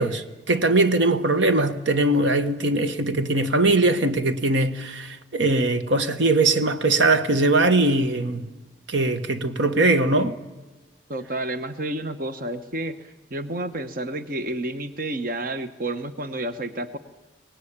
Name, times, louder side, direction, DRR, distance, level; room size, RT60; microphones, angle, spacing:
voice 1, 0.0-8.5 8.9-10.3, right 2 dB, 75° right, 1.3 m, -21 dB
voice 2, 11.1-17.0, right 1 dB, 50° right, 1.0 m, -30 dB
24.0 x 19.0 x 8.8 m
head